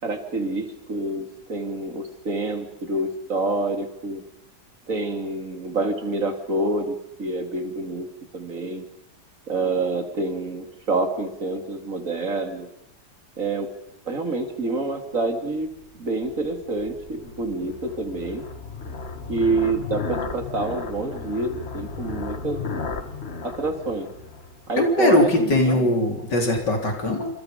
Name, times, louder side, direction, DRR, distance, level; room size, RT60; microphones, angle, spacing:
voice 1, 0.0-4.2 4.9-8.1 8.3-8.8 9.5-12.7 13.4-13.7 14.1-18.4 19.3-22.6 23.4-24.1 24.7-25.9, right 2 dB, 50° right, 5 dB, 3.3 m, -27 dB
sound 1, 15.5-25.0, left 4 dB, 40° left, 1.6 m, -35 dB
voice 2, 24.8-27.3, left 1 dB, 80° left, 3 dB, 4.3 m, -20 dB
28.0 x 27.0 x 5.3 m, 0.79 s
omnidirectional pair, 1.9 m